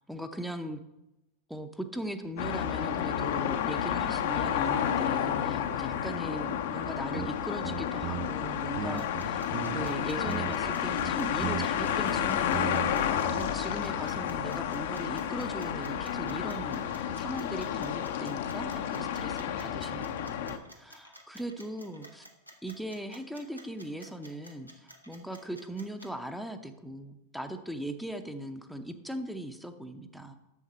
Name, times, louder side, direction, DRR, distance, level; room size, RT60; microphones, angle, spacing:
voice 1, 0.1-0.8 1.5-13.0 13.3-22.3 22.6-30.3, right 1 dB, ahead, 7 dB, 0.8 m, -39 dB
sound 1, 2.4-20.6, left 9 dB, 55° left, 0.7 m, -31 dB
sound 2, 7.1-7.3 7.6-8.5 8.8-9.9 10.3-10.7 11.0-13.0 13.3-13.5, right 14 dB, 35° right, 0.4 m, -37 dB
sound 3, 9.0-26.1, equal, 90° right, 1.2 m, -52 dB
11.0 x 7.3 x 4.3 m, 0.94 s
figure-of-eight pair, 90°, 0 cm